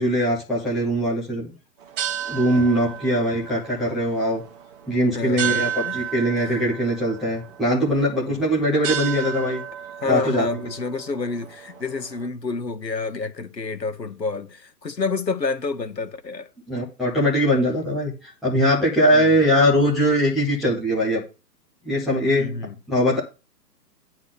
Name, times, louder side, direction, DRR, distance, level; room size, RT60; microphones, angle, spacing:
voice 1, 0.0-1.5 2.3-4.4 4.9-9.6 10.0-10.6 16.7-21.2 21.8-22.6 22.9-23.2, equal, ahead, 0.6 m, -21 dB
sound 1, 1.8-12.3, right 10 dB, 35° right, 1.4 m, -33 dB
voice 2, 5.1-6.0 6.4-6.6 10.0-16.5 19.1-19.3 22.3-22.7, left 4 dB, 85° left, 1.6 m, -29 dB
9.6 x 4.0 x 6.7 m
figure-of-eight pair, 130°, 49 cm